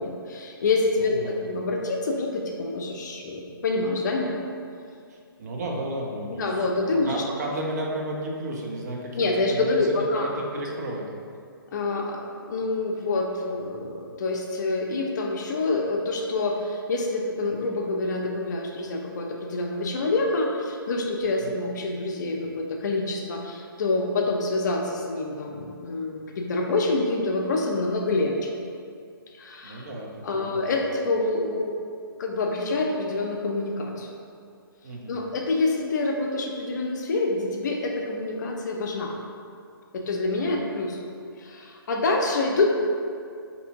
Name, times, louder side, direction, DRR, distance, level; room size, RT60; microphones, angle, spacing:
voice 1, 0.0-4.4 6.3-7.2 9.1-10.3 11.7-28.5 29.3-29.9 30.2-31.8 32.2-34.1 35.1-39.2 39.9-41.0 41.4-42.7, left 2 dB, 50° left, 1 dB, 0.5 m, -27 dB
voice 2, 1.0-1.5 5.1-9.8 10.1-11.1 21.4-21.5 29.6-30.7 34.8-35.2 40.4-40.6, right 1 dB, 45° right, -1 dB, 0.5 m, -33 dB
3.4 x 2.6 x 2.8 m, 2.3 s
figure-of-eight pair, 140°, 12 cm